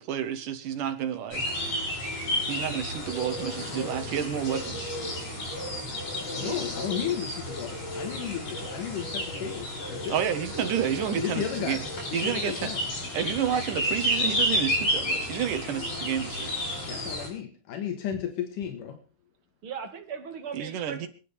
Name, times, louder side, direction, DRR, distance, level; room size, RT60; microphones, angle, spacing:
voice 1, 0.0-1.4 2.5-4.9 10.1-11.8 12.1-12.7 13.1-16.5 20.5-21.1, right 9 dB, 90° right, 9 dB, 3.0 m, -30 dB
sound 1, 1.3-17.3, equal, 55° left, 7.1 m, -31 dB
voice 2, 6.3-10.2 11.2-12.8 16.8-19.0, left 9 dB, 85° left, 5 dB, 3.1 m, -34 dB
voice 3, 19.6-21.1, right 7 dB, 45° right, 6 dB, 2.4 m, -38 dB
27.0 x 10.0 x 3.4 m, 0.37 s
omnidirectional pair, 3.6 m